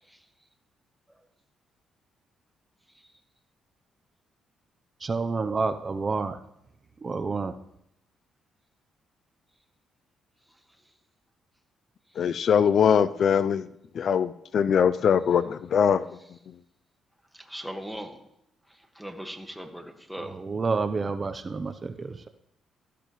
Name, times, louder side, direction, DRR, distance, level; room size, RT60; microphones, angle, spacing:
voice 1, 5.0-6.4 7.0-7.5 20.2-22.3, right 4 dB, 35° right, 8 dB, 0.7 m, -29 dB
voice 2, 12.2-13.7 13.9-16.2, left 7 dB, 60° left, 16 dB, 0.4 m, -22 dB
voice 3, 17.4-18.2 18.9-20.4, equal, ahead, 4 dB, 1.7 m, -38 dB
14.0 x 12.0 x 3.1 m, 0.78 s
cardioid pair, 90°, 0 cm